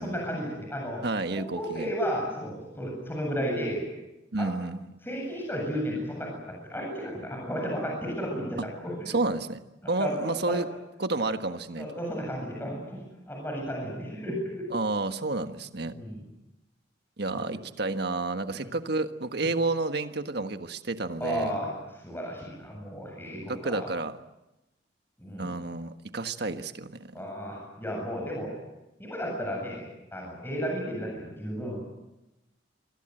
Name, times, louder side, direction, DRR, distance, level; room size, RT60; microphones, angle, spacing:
voice 1, 0.0-1.0 1.3-3.8 4.4-4.5 5.0-9.1 9.8-10.2 10.5-10.6 11.8-14.7 15.9-16.2 17.3-17.4 18.5-18.7 21.2-21.7 22.0-23.9 25.2-25.5 27.1-28.5 29.0-29.8 30.1-31.8, equal, 10° left, -1 dB, 7.9 m, -33 dB
voice 2, 1.0-1.9 4.3-4.8 9.1-10.7 11.0-11.9 14.7-15.9 17.2-21.5 23.5-24.2 25.4-27.1, right 2 dB, 60° right, 8 dB, 1.5 m, -30 dB
28.0 x 23.0 x 7.9 m, 0.97 s
head